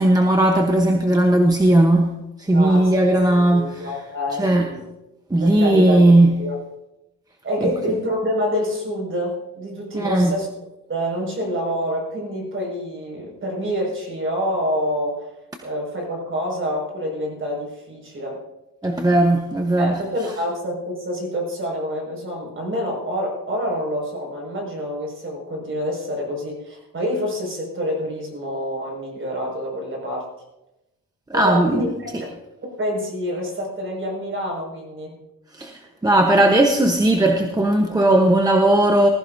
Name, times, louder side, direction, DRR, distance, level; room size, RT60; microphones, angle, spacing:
voice 1, 0.0-2.1 2.4-3.9 4.4-4.7 5.3-6.3 7.6-7.7 9.9-10.4 18.8-20.0 31.3-31.8 35.5-39.1, right 1 dB, 10° right, 2 dB, 1.0 m, -17 dB
voice 2, 2.5-4.8 5.4-6.1 6.4-6.6 7.4-10.5 10.9-15.3 15.6-18.4 19.8-30.3 31.3-32.3 32.8-35.2, equal, 40° right, 0 dB, 5.7 m, -27 dB
20.0 x 14.5 x 2.7 m, 0.94 s
cardioid pair, 140°, 32 cm